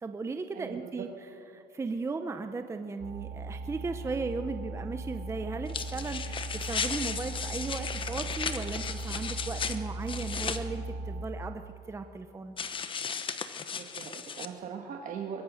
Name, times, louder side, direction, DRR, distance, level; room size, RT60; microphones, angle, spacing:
voice 1, 0.0-1.1 1.5-11.6 11.9-12.6, right 4 dB, 15° right, 7 dB, 0.7 m, -36 dB
voice 2, 0.5-0.9 13.7-15.4, right 7 dB, 45° right, 2 dB, 1.7 m, -40 dB
sound 1, 3.0-11.2, right 2 dB, 60° right, 1.8 m, -38 dB
sound 2, 5.7-10.6 12.6-14.5, left 6 dB, 30° left, 1.1 m, -35 dB
23.5 x 21.5 x 6.4 m, 2.6 s
cardioid pair, 150°, 18 cm